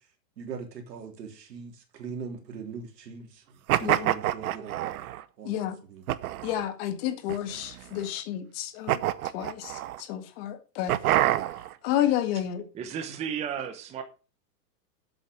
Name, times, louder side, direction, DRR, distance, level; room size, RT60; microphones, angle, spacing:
voice 1, 0.4-5.0 5.4-6.0, right 5 dB, 80° right, 3.5 m, -41 dB
sound 1, 3.7-5.2 6.1-6.7 7.3-8.0 8.9-10.0 10.9-11.7, right 14 dB, 60° right, 0.9 m, -27 dB
voice 2, 3.8-4.1 5.4-5.8 6.4-9.0 9.3-11.2 11.8-12.6, left 11 dB, 35° left, 1.7 m, -30 dB
voice 3, 12.7-14.0, right 8 dB, 15° right, 0.8 m, -33 dB
8.2 x 7.9 x 6.9 m
supercardioid pair, 155°, 49 cm